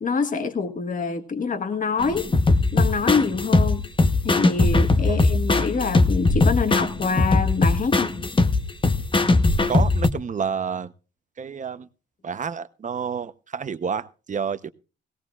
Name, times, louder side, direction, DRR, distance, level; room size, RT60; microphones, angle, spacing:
voice 1, 0.0-2.3 2.7-3.8 4.2-8.1, left 5 dB, 40° left, 7 dB, 1.5 m, -25 dB
sound 1, 2.0-10.1, left 3 dB, 25° left, 1.0 m, -20 dB
voice 2, 9.7-10.9 11.4-11.9 12.2-14.7, right 6 dB, 40° right, 13 dB, 0.8 m, -29 dB
18.0 x 17.0 x 2.4 m, 0.34 s
cardioid pair, 80°, 20 cm